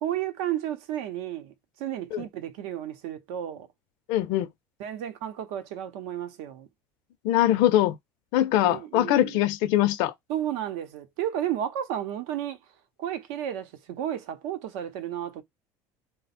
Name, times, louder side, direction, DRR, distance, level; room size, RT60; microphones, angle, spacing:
voice 1, 0.0-3.7 4.8-6.7 8.6-9.4 10.3-12.6 13.0-15.4, right 11 dB, 85° right, 0.7 m, -32 dB
voice 2, 4.1-4.5 7.2-7.9 8.3-10.1, left 13 dB, 70° left, 0.5 m, -22 dB
3.8 x 2.1 x 4.2 m
cardioid pair, 155°, 8 cm